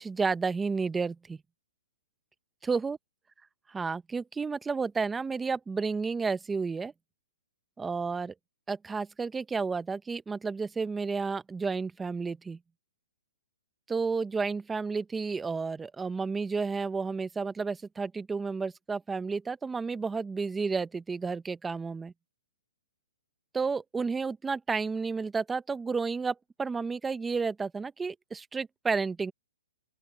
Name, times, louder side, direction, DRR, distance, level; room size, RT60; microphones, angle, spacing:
voice 1, 0.0-1.4 2.6-3.0 3.7-6.9 7.8-8.3 8.7-12.6 13.9-22.1 23.5-29.3, right 4 dB, 10° right, 0.7 m, -31 dB
open air
hypercardioid pair, 155°, 0 cm